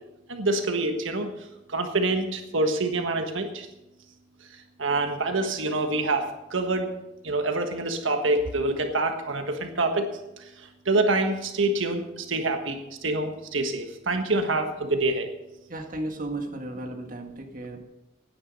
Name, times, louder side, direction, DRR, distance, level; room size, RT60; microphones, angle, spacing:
voice 1, 0.3-1.3 1.7-3.7 4.8-6.9 7.2-10.1 10.4-10.5 10.8-15.3, right 2 dB, 85° right, 5 dB, 1.5 m, -26 dB
voice 2, 15.7-17.8, right 1 dB, 45° right, 3 dB, 1.7 m, -34 dB
16.5 x 9.9 x 5.4 m, 0.95 s
head